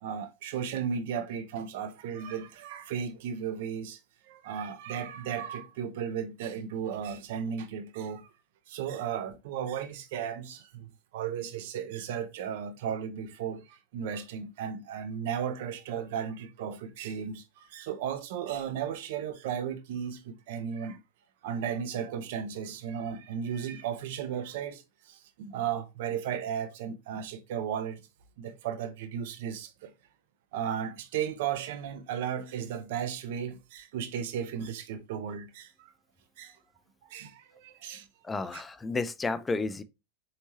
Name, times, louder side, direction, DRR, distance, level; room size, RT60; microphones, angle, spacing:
voice 1, 0.0-4.0 4.3-8.3 8.7-21.0 21.4-28.0 28.4-29.9 30.5-35.9 36.4-36.6 37.1-38.1 38.5-38.6, right 8 dB, 50° right, 0.6 m, -35 dB
voice 2, 38.2-39.8, left 3 dB, 15° left, 0.4 m, -31 dB
4.4 x 2.9 x 2.9 m
figure-of-eight pair, 90°, 0 cm